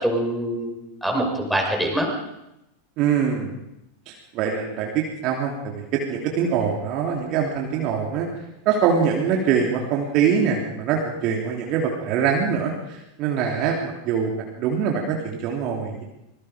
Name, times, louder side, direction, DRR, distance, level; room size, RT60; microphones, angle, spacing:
voice 1, 0.0-2.1, right 1 dB, ahead, -1 dB, 6.2 m, -24 dB
voice 2, 3.0-3.5 4.1-8.3 8.6-16.0, right 7 dB, 45° right, 0 dB, 3.3 m, -24 dB
25.5 x 21.5 x 5.2 m, 0.88 s
figure-of-eight pair, 90°, 0 cm